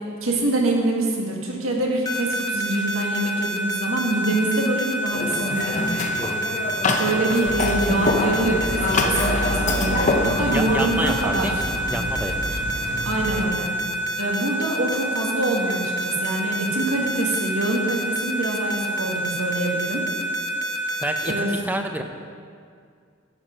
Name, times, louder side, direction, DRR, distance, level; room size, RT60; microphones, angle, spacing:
voice 1, 0.2-5.8 7.0-11.5 13.0-13.7 14.2-20.0 21.3-21.5, right 2 dB, 70° right, -1 dB, 1.8 m, -25 dB
sound 1, 2.1-21.3, right 1 dB, 15° left, 1.0 m, -28 dB
sound 2, 5.1-11.2, left 3 dB, 35° left, 0.7 m, -25 dB
sound 3, 7.4-13.4, right 1 dB, 50° right, 1.0 m, -30 dB
voice 2, 10.5-12.6 21.0-22.0, right 1 dB, 10° right, 5 dB, 0.6 m, -29 dB
10.5 x 8.0 x 5.1 m, 2.2 s
head